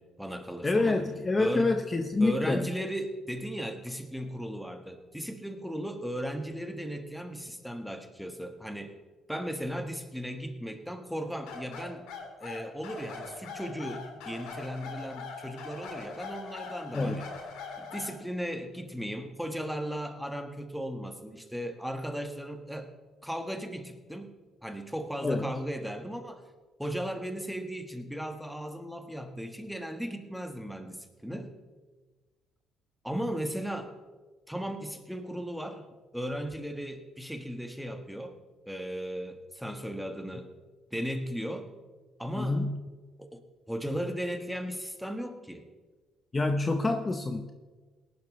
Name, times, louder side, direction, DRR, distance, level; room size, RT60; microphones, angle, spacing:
voice 1, 0.0-1.0 1.4-1.8 2.2-8.9 9.3-12.1 12.4-17.3 17.8-22.9 23.2-24.3 24.6-26.4 26.8-31.5 33.0-33.9 34.5-35.9 36.1-38.3 38.7-40.5 40.9-41.7 42.2-42.6 43.2-45.6, equal, ahead, 6 dB, 1.4 m, -36 dB
voice 2, 0.6-2.7 16.9-17.2 25.2-25.5 42.4-42.8 46.3-47.5, left 2 dB, 25° left, 6 dB, 0.8 m, -27 dB
sound 1, 11.5-18.2, left 5 dB, 90° left, 2.0 m, -42 dB
18.0 x 11.0 x 3.2 m, 1.3 s
cardioid pair, 90°, 0 cm